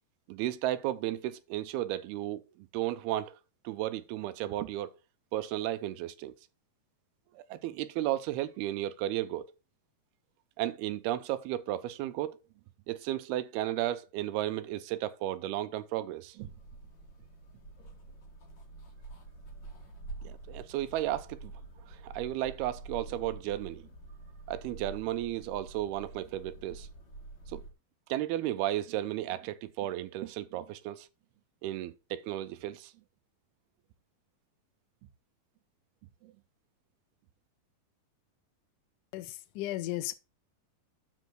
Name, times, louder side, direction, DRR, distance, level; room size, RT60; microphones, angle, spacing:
voice 1, 0.3-3.3 3.6-4.9 5.3-6.3 7.4-9.5 10.6-12.4 12.9-16.5 20.2-21.5 21.9-23.8 24.5-26.9 27.5-27.6 28.1-31.1 31.6-32.9 36.2-36.3, right 13 dB, 80° right, 2.6 m, -34 dB
sound 1, 16.4-27.7, right 3 dB, 40° left, 1.9 m, -47 dB
voice 2, 39.1-40.1, left 15 dB, 75° left, 2.1 m, -35 dB
7.5 x 5.3 x 6.1 m
omnidirectional pair, 4.6 m